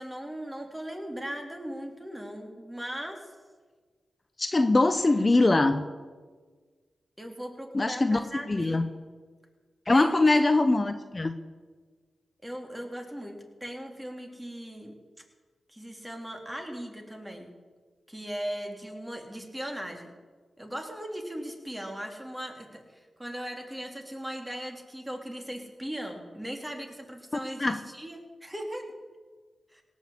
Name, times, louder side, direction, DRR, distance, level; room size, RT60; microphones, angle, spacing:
voice 1, 0.0-3.3 7.2-8.8 9.9-10.5 12.4-14.9 15.7-17.5 18.1-20.1 20.6-28.9 29.7-29.8, equal, 15° right, 2 dB, 3.1 m, -38 dB
voice 2, 4.4-5.8 7.7-8.2 8.5-8.9 9.9-11.3 27.6-27.8, left 2 dB, 35° left, 9 dB, 0.8 m, -22 dB
17.5 x 6.5 x 8.4 m, 1.4 s
cardioid pair, 45°, 0 cm